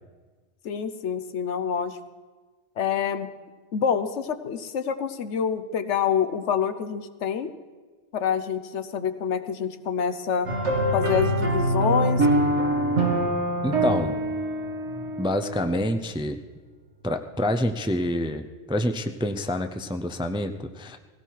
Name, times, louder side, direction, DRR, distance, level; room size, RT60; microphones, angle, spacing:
voice 1, 0.6-2.0 2.8-3.3 3.7-7.5 8.1-10.5 10.9-12.3, left 7 dB, 80° left, 10 dB, 1.1 m, -27 dB
sound 1, 10.5-16.0, right 1 dB, 85° right, 2.1 m, -24 dB
voice 2, 13.6-14.2 15.2-16.4 17.0-21.0, left 1 dB, 10° right, 7 dB, 0.3 m, -27 dB
18.0 x 16.5 x 4.7 m, 1.4 s
omnidirectional pair, 1.2 m